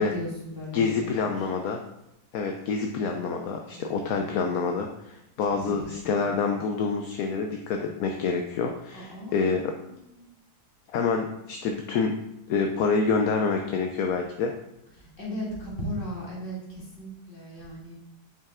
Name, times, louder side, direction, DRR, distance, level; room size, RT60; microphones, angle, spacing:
voice 1, 0.0-1.5 3.7-4.4 5.4-6.3 8.9-10.4 15.0-17.9, equal, 35° left, -5 dB, 2.3 m, -38 dB
voice 2, 0.7-1.8 2.3-9.7 10.9-12.2 12.5-14.5, left 5 dB, 70° left, 4 dB, 1.0 m, -27 dB
6.9 x 5.6 x 3.6 m, 0.86 s
omnidirectional pair, 1.7 m